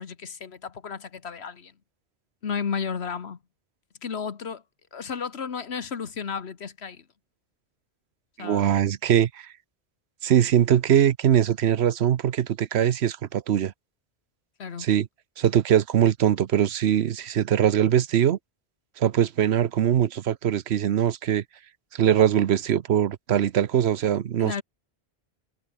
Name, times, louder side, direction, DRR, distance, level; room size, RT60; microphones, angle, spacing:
voice 1, 0.0-1.7 2.4-3.4 4.0-4.6 4.9-7.0 8.4-8.7 14.6-14.9 24.4-24.6, left 6 dB, 85° left, 1.5 m, -33 dB
voice 2, 8.4-9.5 10.2-13.7 14.8-15.1 15.4-18.4 19.0-21.4 21.9-24.6, right 10 dB, 90° right, 1.0 m, -22 dB
omnidirectional pair, 1.1 m